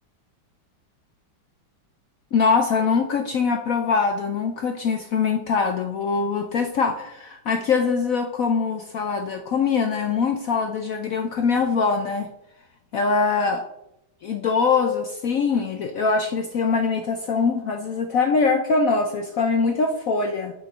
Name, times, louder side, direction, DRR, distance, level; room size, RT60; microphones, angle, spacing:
voice 1, 2.3-12.3 12.9-13.6 14.2-20.5, left 5 dB, 75° left, 6 dB, 0.8 m, -23 dB
8.1 x 5.9 x 4.8 m, 0.85 s
omnidirectional pair, 2.2 m